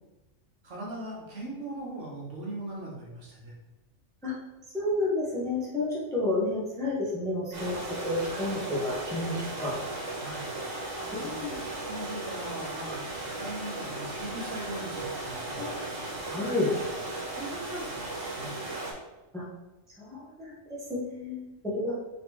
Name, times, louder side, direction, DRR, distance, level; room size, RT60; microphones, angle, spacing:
voice 1, 0.6-3.5 10.2-10.5 11.1-11.5 11.8-15.7 17.3-18.5, right 1 dB, 70° right, -3 dB, 1.4 m, -40 dB
voice 2, 4.7-9.7 11.1-11.6 15.6-15.7 16.3-16.7 19.3-19.4 20.0-21.9, left 2 dB, 5° left, -6 dB, 0.8 m, -31 dB
sound 1, 7.5-18.9, right 2 dB, 85° right, 1.4 m, -36 dB
3.9 x 3.5 x 2.9 m, 1.0 s
omnidirectional pair, 1.3 m